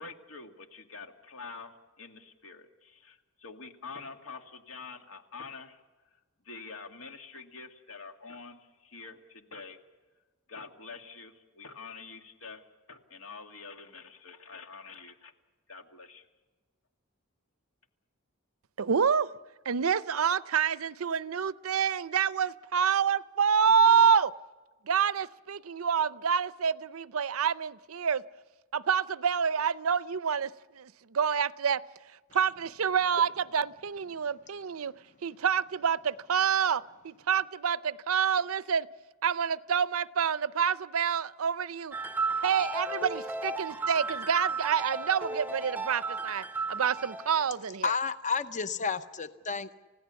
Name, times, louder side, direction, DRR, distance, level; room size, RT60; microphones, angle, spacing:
voice 1, 0.0-5.8 6.5-9.8 10.5-12.6 12.9-15.3 15.7-16.2, left 4 dB, 80° left, 2.2 m, -46 dB
voice 2, 18.8-19.3 19.7-24.3 24.9-28.2 28.7-31.8 32.3-34.9 35.2-38.9 39.2-41.9 42.4-46.4 46.7-47.9, right 7 dB, 75° right, 0.6 m, -27 dB
sound 1, 41.9-47.3, right 3 dB, 10° right, 0.6 m, -34 dB
voice 3, 47.8-49.8, left 5 dB, 35° left, 0.7 m, -31 dB
30.0 x 16.0 x 7.0 m
head